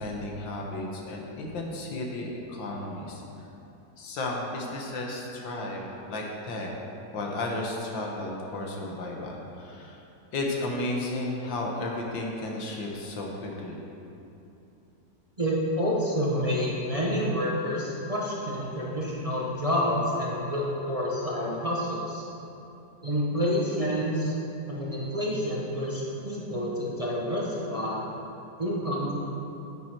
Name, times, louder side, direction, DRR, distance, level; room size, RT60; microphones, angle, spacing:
voice 1, 0.0-3.2 4.0-6.7 7.1-10.0 10.3-13.8, left 2 dB, 85° left, -1 dB, 2.0 m, -33 dB
voice 2, 15.4-22.2 23.0-24.3 24.7-28.0 28.6-29.1, equal, 25° right, -6 dB, 1.0 m, -28 dB
9.2 x 8.9 x 4.5 m, 2.8 s
omnidirectional pair, 2.0 m